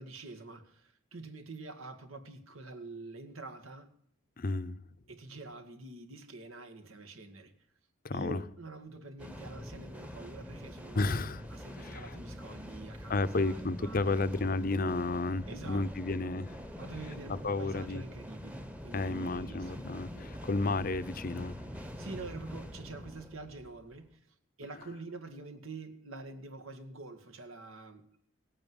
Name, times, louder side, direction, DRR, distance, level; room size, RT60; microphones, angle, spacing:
voice 1, 0.0-3.9 5.1-7.5 8.1-11.2 11.5-14.3 15.5-15.9 16.8-19.7 21.8-28.2, right 3 dB, 80° right, 1.9 m, -46 dB
voice 2, 4.4-4.8 8.0-8.4 10.9-12.2 13.1-16.6 17.3-18.0 18.9-21.6, left 3 dB, 45° left, 0.6 m, -32 dB
sound 1, 9.2-24.0, equal, 5° right, 1.0 m, -45 dB
18.0 x 8.9 x 7.8 m
head